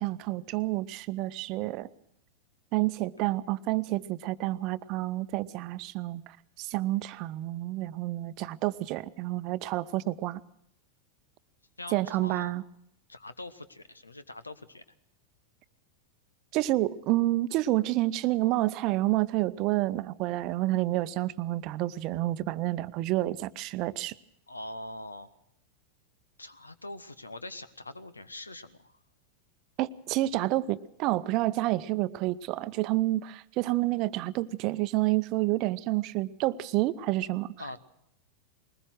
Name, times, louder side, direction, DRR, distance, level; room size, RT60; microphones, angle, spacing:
voice 1, 0.0-1.9 2.7-10.4 11.9-12.6 16.5-24.2 29.8-37.5, right 17 dB, 40° right, 15 dB, 0.7 m, -29 dB
voice 2, 11.8-12.5 13.1-14.8 24.5-25.3 26.4-29.0 37.6-37.8, left 2 dB, 80° left, 14 dB, 1.2 m, -43 dB
21.5 x 20.0 x 6.2 m, 0.75 s
figure-of-eight pair, 90°, 0 cm